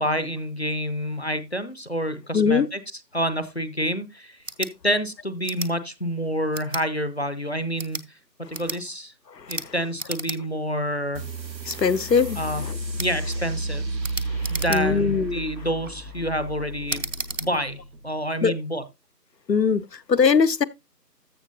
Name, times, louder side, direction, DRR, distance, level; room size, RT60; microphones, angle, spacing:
voice 1, 0.0-2.8 3.1-8.0 8.5-9.1 9.5-11.2 12.4-12.6 13.0-13.8 14.5-17.1 17.4-18.8, equal, 40° left, 0.7 m, -28 dB
voice 2, 2.3-2.7 9.4-9.5 11.7-12.8 14.3-15.4 18.4-18.5 19.5-20.6, left 6 dB, 80° left, 0.8 m, -22 dB
sound 1, 4.4-4.7 5.4-5.7 6.5-6.9 7.7-8.1 8.5-8.8 9.5-9.7 10.0-10.4 10.7-10.8 11.7-11.8 13.0-13.1 14.0-15.1 15.6-15.9 16.9-17.5, right 3 dB, 50° right, 0.8 m, -33 dB
sound 2, 11.1-18.3, right 2 dB, 85° right, 1.6 m, -32 dB
14.0 x 6.1 x 2.6 m
figure-of-eight pair, 170°, 50 cm